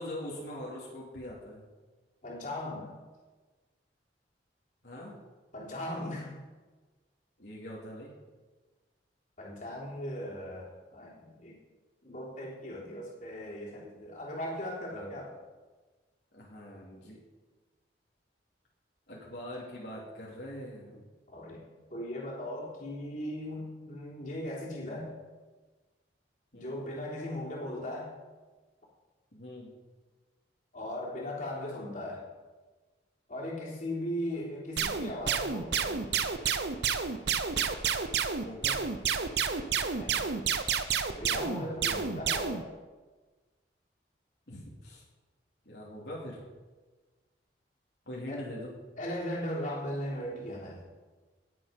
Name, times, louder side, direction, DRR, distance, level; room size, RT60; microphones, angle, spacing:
voice 1, 0.0-1.7 4.8-5.1 7.4-8.1 16.3-17.2 19.1-21.1 24.8-25.1 26.5-26.8 29.3-29.8 38.4-38.8 44.5-45.0 45.6-46.4 48.1-48.7, left 1 dB, 65° left, -5 dB, 2.9 m, -42 dB
voice 2, 2.2-2.9 5.5-6.4 9.4-11.6 12.0-15.3 21.3-21.6 21.9-25.2 26.5-28.2 30.7-32.3 33.3-36.3 39.9-40.2 41.1-42.7 48.3-48.5 49.0-50.8, left 1 dB, 45° left, -4 dB, 3.5 m, -38 dB
sound 1, 34.8-42.6, right 6 dB, 70° right, 0.8 m, -30 dB
18.5 x 7.9 x 5.2 m, 1.3 s
head